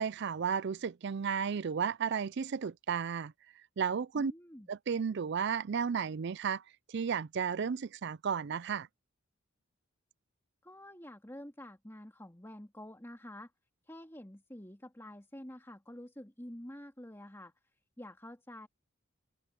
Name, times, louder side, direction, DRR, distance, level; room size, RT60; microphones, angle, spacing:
voice 1, 0.0-3.3 3.8-4.3 4.7-6.6 6.9-8.9, right 6 dB, 50° right, 0.4 m, -33 dB
voice 2, 4.1-4.7 10.6-13.5 13.8-17.5 18.0-18.7, left 1 dB, 10° left, 2.6 m, -48 dB
head